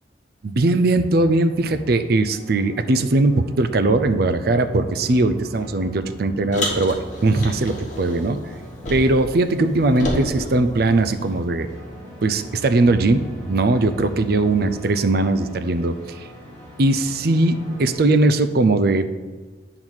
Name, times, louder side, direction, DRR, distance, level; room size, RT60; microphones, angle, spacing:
voice 1, 0.4-8.5 8.9-11.7 12.2-16.3 16.8-19.1, right 2 dB, 55° right, 10 dB, 0.5 m, -20 dB
sound 1, 1.0-18.0, equal, 15° left, 2.7 m, -40 dB
Car, 6.5-9.3 9.6-11.4, left 1 dB, 40° left, 1.4 m, -31 dB
8.8 x 3.9 x 6.2 m, 1.3 s
head